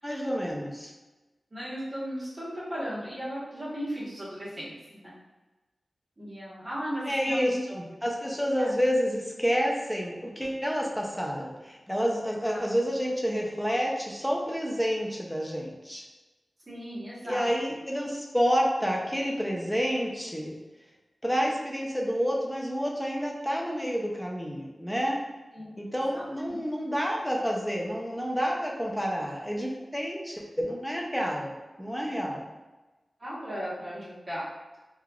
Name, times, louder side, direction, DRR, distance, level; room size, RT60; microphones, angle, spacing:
voice 1, 0.0-0.9 7.0-16.0 17.2-20.5 21.2-25.2 25.8-32.5, equal, 5° left, -2 dB, 0.5 m, -29 dB
voice 2, 1.5-4.7 5.0-5.1 6.2-7.6 8.6-8.7 12.4-12.6 16.7-17.5 25.5-25.7 26.1-26.5 33.2-34.4, equal, 40° right, -9 dB, 1.2 m, -36 dB
3.3 x 2.4 x 2.3 m, 1.2 s
wide cardioid pair, 75°, 0 cm